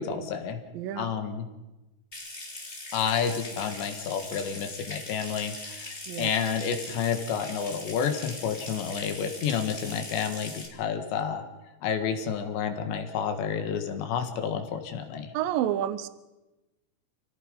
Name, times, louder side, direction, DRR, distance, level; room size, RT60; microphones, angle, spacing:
voice 1, 0.0-0.6 1.0-1.5 2.9-11.4 11.8-15.3, left 7 dB, 70° left, 7 dB, 3.8 m, -30 dB
voice 2, 0.7-1.1 6.1-6.3 15.3-16.1, right 11 dB, 85° right, 13 dB, 2.0 m, -29 dB
Water tap faucet / Sink (filling or washing) / Trickle dribble, 2.1-10.7, left 2 dB, 15° left, 2.9 m, -41 dB
29.0 x 17.5 x 5.3 m, 1.1 s
omnidirectional pair, 5.4 m